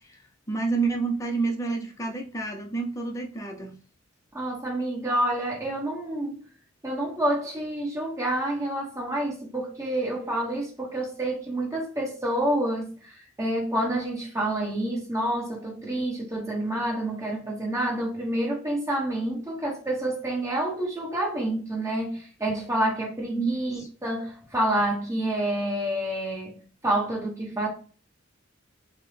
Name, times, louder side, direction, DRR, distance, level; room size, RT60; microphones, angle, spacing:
voice 1, 0.5-3.7 23.3-23.9, right 4 dB, 15° left, 0.5 m, -29 dB
voice 2, 4.3-6.4 6.8-27.7, right 1 dB, 15° right, 1.2 m, -28 dB
4.4 x 2.1 x 3.2 m
head